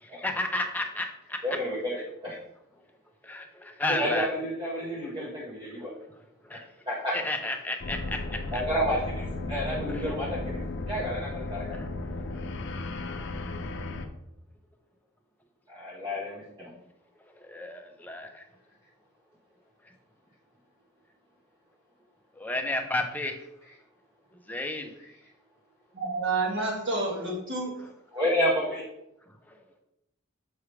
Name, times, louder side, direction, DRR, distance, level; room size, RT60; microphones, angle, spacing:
voice 1, 0.0-1.4 3.2-4.3 6.4-6.6 7.1-8.6 9.9-10.0 11.7-11.9 17.4-18.4 22.4-23.4 24.5-24.9 29.5-29.6, left 2 dB, 10° left, 4 dB, 0.6 m, -32 dB
voice 2, 1.4-2.4 3.9-5.9 6.9-7.1 8.5-10.6 10.9-11.8 15.7-16.7 28.1-28.8, equal, 20° right, -6 dB, 1.0 m, -30 dB
sound 1, 7.8-14.1, left 2 dB, 55° left, 0.6 m, -35 dB
voice 3, 25.9-27.7, right 3 dB, 55° right, -3 dB, 2.1 m, -29 dB
7.1 x 4.8 x 3.2 m, 0.82 s
head